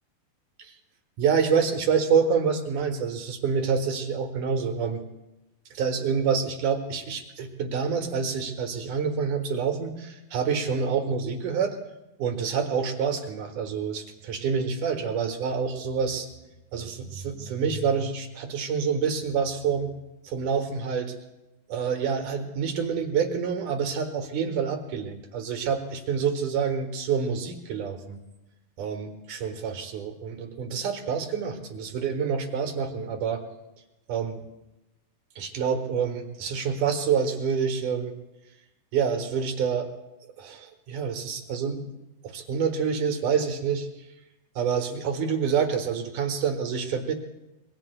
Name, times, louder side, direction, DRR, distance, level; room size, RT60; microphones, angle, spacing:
voice 1, 1.2-5.0 5.7-11.8 12.2-16.3 16.7-19.9 20.2-21.1 21.7-28.2 28.8-33.4 34.1-34.4 35.4-38.1 38.9-39.9 40.4-41.9 42.2-43.9 44.6-47.1, right 6 dB, 65° right, 4 dB, 2.5 m, -27 dB
26.5 x 22.5 x 2.2 m, 0.96 s
omnidirectional pair, 4.4 m